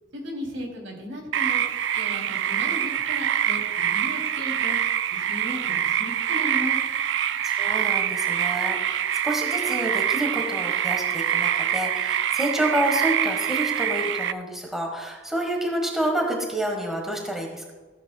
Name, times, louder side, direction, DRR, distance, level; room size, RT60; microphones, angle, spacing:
voice 1, 0.1-1.6 1.9-6.8, equal, 85° right, -1 dB, 3.2 m, -36 dB
sound 1, 1.3-14.3, right 9 dB, 65° right, 0.3 m, -25 dB
voice 2, 7.4-17.7, right 1 dB, ahead, 0 dB, 1.4 m, -28 dB
15.0 x 8.9 x 2.3 m, 1.3 s
head